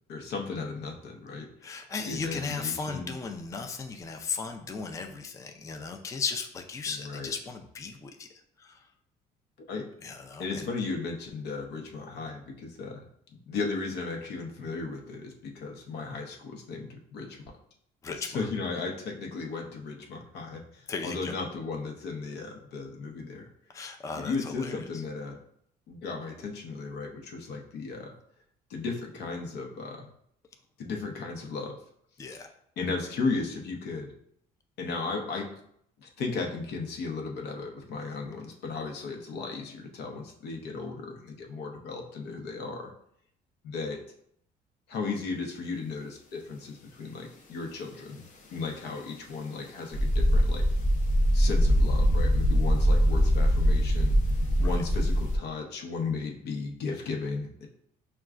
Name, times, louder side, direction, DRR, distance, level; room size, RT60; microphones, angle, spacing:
voice 1, 0.1-1.7 2.0-3.1 7.0-7.3 9.7-9.9 10.4-13.0 13.5-17.4 18.2-23.5 24.1-25.4 25.9-28.1 28.7-30.1 30.8-31.8 32.3-32.4 32.8-34.1 34.8-35.5 36.0-42.9 43.6-44.0 44.9-48.2 48.5-50.6 51.3-54.2 54.6-57.7, left 4 dB, 80° left, 1 dB, 0.8 m, -35 dB
voice 2, 1.6-8.3 8.6-8.8 10.0-10.7 18.0-18.4 20.9-21.3 23.7-24.8 32.2-32.5 54.6-54.8, left 5 dB, 20° left, 5 dB, 0.4 m, -36 dB
sound 1, 49.9-55.4, equal, 50° left, 0.7 m, -23 dB
6.0 x 2.3 x 2.4 m, 0.70 s
cardioid pair, 110°, 17 cm